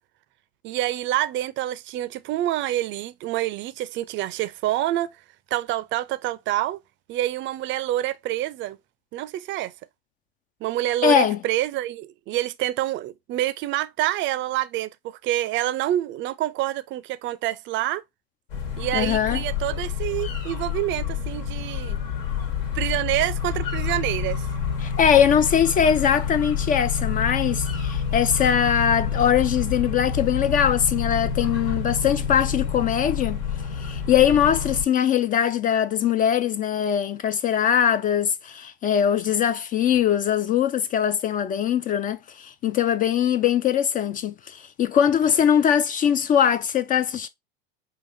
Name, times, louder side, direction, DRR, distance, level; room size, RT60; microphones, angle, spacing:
voice 1, 0.6-5.2 5.5-6.8 7.1-8.8 9.1-9.7 10.6-18.0 18.8-22.0 22.7-24.5, right 14 dB, 40° right, 0.5 m, -27 dB
voice 2, 11.0-11.4 18.9-19.4 24.8-33.4 33.8-47.3, left 9 dB, 30° left, 0.4 m, -21 dB
sound 1, 18.5-34.8, left 6 dB, 75° left, 1.4 m, -28 dB
5.7 x 2.5 x 2.6 m
hypercardioid pair, 80°, 29 cm